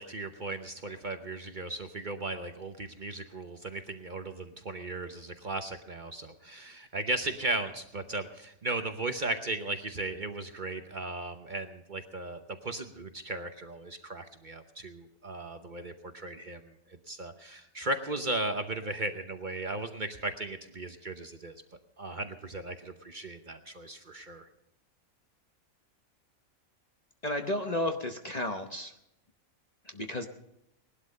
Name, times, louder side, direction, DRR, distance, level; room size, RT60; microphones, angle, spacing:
voice 1, 0.0-16.7 17.1-21.5 22.0-24.5, right 2 dB, 40° right, 7 dB, 0.9 m, -36 dB
voice 2, 27.2-28.9 29.9-30.3, left 1 dB, 35° left, 5 dB, 0.8 m, -32 dB
19.0 x 12.0 x 5.4 m, 0.81 s
omnidirectional pair, 1.5 m